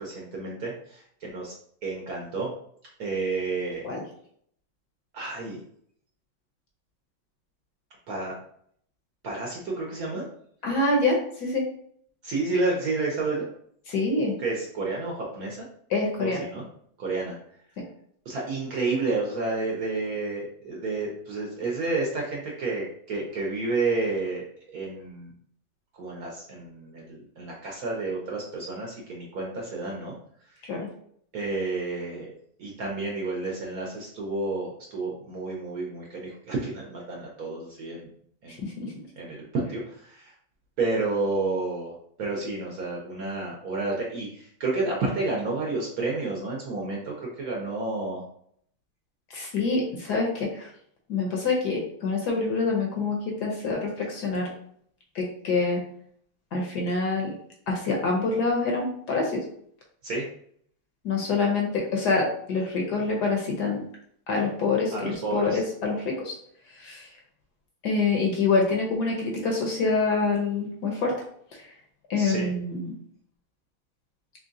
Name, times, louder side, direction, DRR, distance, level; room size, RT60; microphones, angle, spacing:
voice 1, 0.0-1.5 1.8-2.5 3.0-3.8 5.1-5.6 8.1-8.3 9.2-10.3 12.2-13.5 14.4-15.7 16.2-16.7 17.0-17.3 18.3-24.4 24.7-25.3 25.9-30.2 31.3-32.3 32.6-38.1 38.4-38.6 39.2-40.3 40.8-48.2 60.0-60.2 64.9-65.6 72.2-72.5, right 3 dB, 60° right, -2 dB, 1.0 m, -30 dB
voice 2, 10.6-11.7 13.9-14.4 15.9-16.4 30.7-30.9 38.6-38.9 49.3-50.7 51.1-54.5 55.1-55.8 56.5-57.3 57.7-59.4 61.0-63.8 64.3-66.4 66.8-67.1 67.8-71.1 72.1-72.9, left 3 dB, 65° left, -1 dB, 1.1 m, -26 dB
3.7 x 3.5 x 2.6 m, 0.64 s
omnidirectional pair, 2.2 m